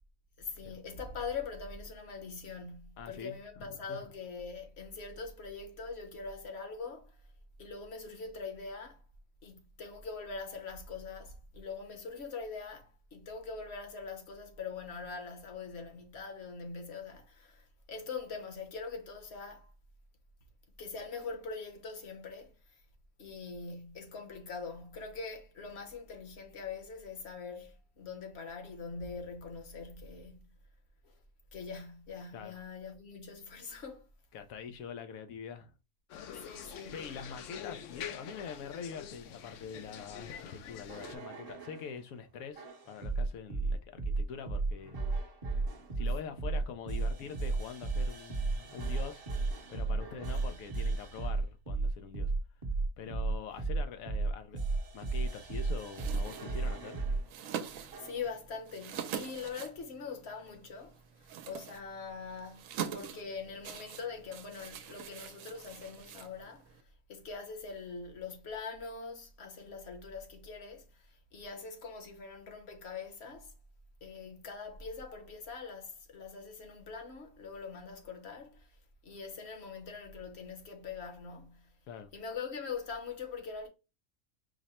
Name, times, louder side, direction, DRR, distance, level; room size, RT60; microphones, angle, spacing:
voice 1, 0.4-7.2 7.6-9.0 9.4-19.7 20.8-22.5 23.2-30.4 31.0-31.1 31.5-34.1 36.4-37.0 50.5-50.6 57.7-62.6 62.9-73.5 74.0-78.8 79.0-81.7 82.1-83.7, left 5 dB, 50° left, 1.2 m, -43 dB
voice 2, 3.0-4.0 32.3-32.6 34.3-35.7 36.9-45.0 46.0-49.2 49.7-52.3 53.0-54.6 54.9-57.0 81.9-82.1, left 6 dB, 90° left, 1.0 m, -44 dB
sound 1, 36.1-41.2, left 8 dB, 70° left, 0.9 m, -45 dB
sound 2, 40.9-41.9 42.6-57.2 57.9-58.3, right 3 dB, 35° right, 0.6 m, -34 dB
sound 3, 55.9-66.8, right 8 dB, 75° right, 0.9 m, -44 dB
4.9 x 2.1 x 4.1 m
omnidirectional pair, 1.4 m